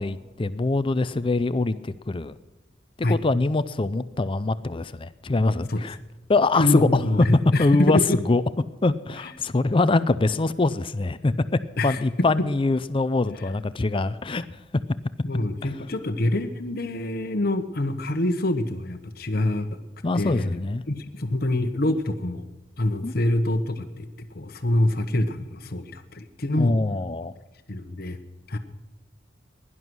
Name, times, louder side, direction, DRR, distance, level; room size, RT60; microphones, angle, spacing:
voice 1, 0.0-2.3 3.0-6.0 6.3-6.8 7.6-8.0 8.3-8.4 8.8-11.3 11.8-14.5 20.0-20.8 23.0-23.1 26.6-27.3, left 3 dB, 30° left, 14 dB, 0.5 m, -24 dB
voice 2, 6.5-8.2 9.2-9.3 11.8-12.0 13.3-13.5 15.2-19.8 20.1-20.5 20.9-22.4 22.8-26.8 27.7-28.2 28.5-28.6, left 1 dB, 55° left, 8 dB, 1.1 m, -25 dB
16.5 x 11.0 x 6.1 m, 1.1 s
head